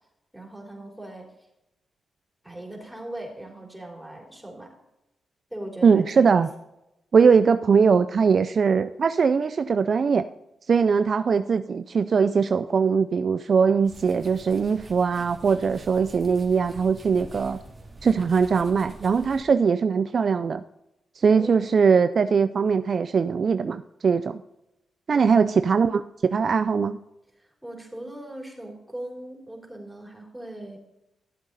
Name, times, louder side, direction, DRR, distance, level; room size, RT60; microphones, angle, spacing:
voice 1, 0.3-1.3 2.4-4.7 5.5-6.4 21.4-21.6 25.1-25.6 27.4-30.8, right 1 dB, 5° right, -1 dB, 3.8 m, -39 dB
voice 2, 5.8-6.5 7.1-10.3 10.7-17.6 18.0-20.6 21.2-24.4 25.1-27.0, right 5 dB, 55° right, 11 dB, 0.4 m, -21 dB
sound 1, 13.8-19.4, right 2 dB, 25° right, 2.5 m, -45 dB
13.0 x 7.6 x 4.0 m, 0.88 s
cardioid pair, 65°, 0 cm